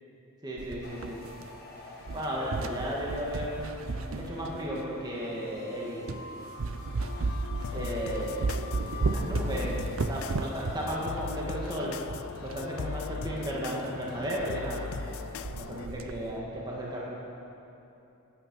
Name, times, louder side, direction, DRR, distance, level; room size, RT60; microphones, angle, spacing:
voice 1, 0.4-1.2 2.1-3.7 4.2-6.3 7.7-9.8 10.1-12.0 12.4-15.1 15.5-17.0, equal, 20° right, -5 dB, 1.8 m, -34 dB
sound 1, 0.6-1.7 2.0-5.0 5.6-5.7 6.1-6.3 6.6-12.7 12.9-13.0 13.3-13.4 13.8-14.0 14.4-14.5 14.8-15.1 15.4-16.4, right 3 dB, 70° right, 0.5 m, -34 dB
sound 2, 0.8-10.5, left 3 dB, 45° left, 1.6 m, -47 dB
sound 3, 7.0-15.9, left 5 dB, 80° left, 0.4 m, -39 dB
16.0 x 9.5 x 5.3 m, 2.9 s
head